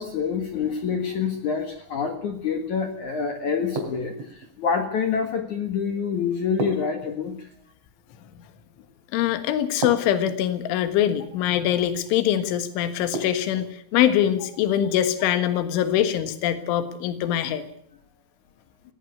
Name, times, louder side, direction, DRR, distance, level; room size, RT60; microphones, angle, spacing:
voice 1, 0.0-7.3, left 6 dB, 60° left, 6 dB, 2.1 m, -27 dB
sound 1, 3.8-4.5 6.6-7.6 9.8-10.6 13.1-13.8, right 2 dB, 75° right, 5.8 m, -32 dB
voice 2, 9.1-17.7, left 11 dB, 75° left, 10 dB, 3.9 m, -23 dB
18.0 x 17.5 x 9.5 m, 0.67 s
omnidirectional pair, 5.6 m